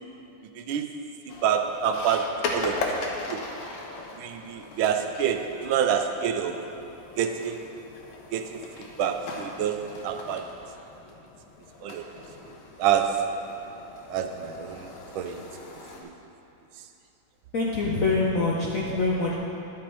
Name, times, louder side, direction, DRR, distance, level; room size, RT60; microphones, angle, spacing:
sound 1, 1.3-16.0, left 3 dB, 85° left, 1.7 m, -39 dB
voice 1, 1.4-2.8 3.3-3.4 4.2-6.6 7.2-7.6 8.3-8.6 9.0-10.4 11.8-12.0 12.8-13.2 14.1-14.9 15.1-15.4, right 8 dB, 80° right, 6 dB, 1.4 m, -27 dB
voice 2, 17.5-19.3, left 3 dB, 65° left, -4 dB, 0.8 m, -25 dB
11.0 x 6.1 x 4.4 m, 2.8 s
omnidirectional pair, 2.3 m